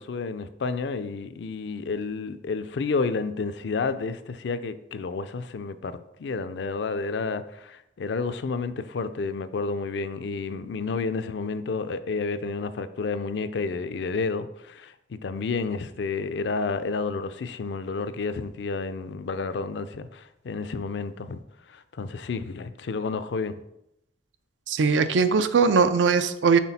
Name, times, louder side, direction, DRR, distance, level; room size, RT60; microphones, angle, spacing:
voice 1, 0.0-21.4 21.7-23.6, left 4 dB, 70° left, 12 dB, 0.4 m, -30 dB
voice 2, 24.7-26.6, right 5 dB, 90° right, 11 dB, 0.4 m, -20 dB
6.0 x 4.2 x 4.1 m, 0.83 s
head